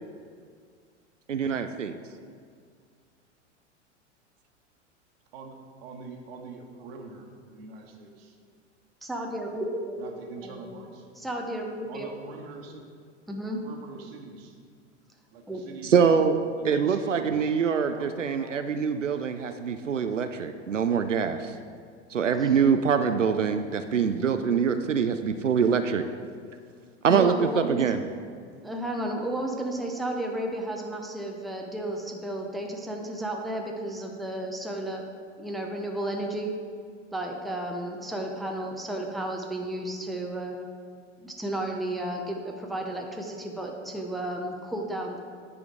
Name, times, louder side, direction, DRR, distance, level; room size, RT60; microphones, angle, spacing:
voice 1, 1.3-1.9 15.8-16.4 16.6-21.5 22.1-26.0 27.0-28.0, right 6 dB, 90° right, 8 dB, 0.5 m, -24 dB
voice 2, 5.3-8.4 10.0-11.1 11.9-12.9 13.4-14.6 15.3-16.2 16.5-19.4, right 4 dB, 55° right, 3 dB, 1.4 m, -44 dB
voice 3, 9.0-10.9 11.2-12.1 13.3-13.6 15.5-15.6 22.4-22.6 27.1-27.8 28.6-35.0 35.4-36.5 37.1-40.6 41.2-45.2, right 1 dB, ahead, 1 dB, 0.8 m, -33 dB
9.6 x 5.0 x 5.0 m, 2.1 s
figure-of-eight pair, 90°, 36 cm